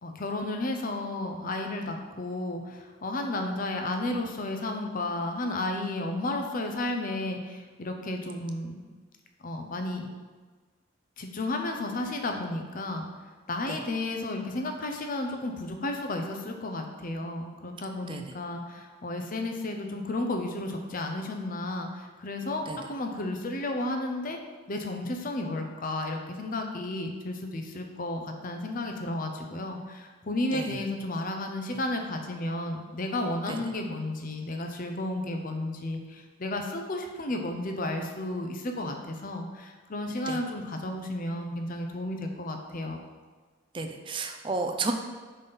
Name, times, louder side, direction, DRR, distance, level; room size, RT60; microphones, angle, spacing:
voice 1, 0.0-8.8 9.4-10.1 11.2-13.1 13.5-24.4 24.7-43.0, left 2 dB, 40° left, 4 dB, 0.7 m, -33 dB
voice 2, 43.7-44.9, right 3 dB, 25° right, 5 dB, 0.5 m, -32 dB
5.3 x 4.1 x 5.4 m, 1.4 s
head